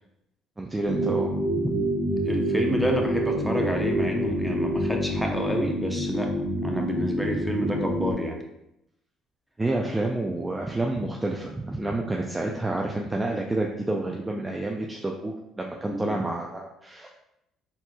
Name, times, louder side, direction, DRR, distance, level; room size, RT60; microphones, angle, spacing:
voice 1, 0.6-1.9 9.6-17.1, right 2 dB, 15° right, 0 dB, 0.5 m, -29 dB
sound 1, 0.8-8.1, equal, 75° right, 1.4 m, -27 dB
voice 2, 2.3-6.3 6.6-8.4 15.9-16.2, equal, ahead, 1 dB, 0.9 m, -28 dB
4.4 x 4.1 x 2.3 m, 0.84 s
supercardioid pair, 80°, 0 cm